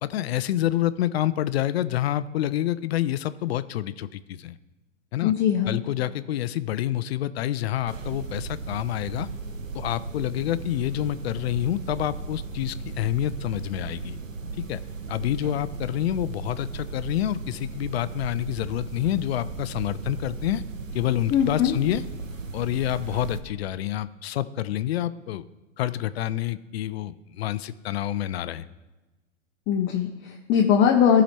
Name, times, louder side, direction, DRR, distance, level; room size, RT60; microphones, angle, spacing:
voice 1, 0.0-4.6 5.1-5.3 5.6-9.3 9.7-14.2 14.7-14.8 15.1-20.6 20.9-22.0 22.5-25.4 25.8-28.6, left 13 dB, 55° left, 15 dB, 0.5 m, -28 dB
voice 2, 5.2-5.8 21.3-21.8 29.7-31.2, left 8 dB, 30° left, 1 dB, 0.8 m, -21 dB
sound 1, 7.9-23.4, right 4 dB, 85° right, 0.9 m, -36 dB
14.0 x 5.0 x 4.3 m, 1.1 s
figure-of-eight pair, 100°, 38 cm